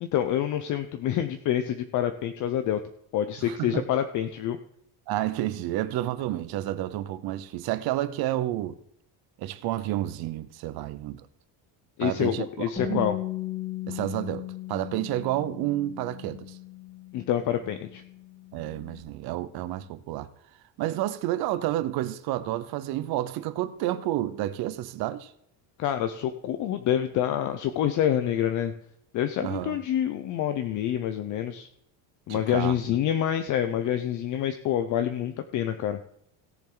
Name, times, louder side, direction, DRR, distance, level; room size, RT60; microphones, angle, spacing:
voice 1, 0.0-2.8 3.1-4.6 12.0-13.2 17.1-18.0 25.8-28.7 29.1-31.7 32.3-36.0, left 10 dB, 45° left, 0.7 m, -27 dB
voice 2, 3.5-3.8 5.1-8.8 9.4-11.3 12.0-13.1 13.9-16.6 18.5-20.3 20.8-25.3 29.4-29.8 32.3-32.7, right 14 dB, 55° right, 0.8 m, -30 dB
Bass guitar, 12.8-19.0, left 14 dB, 15° left, 2.4 m, -37 dB
17.0 x 7.3 x 3.9 m
cardioid pair, 170°, 44 cm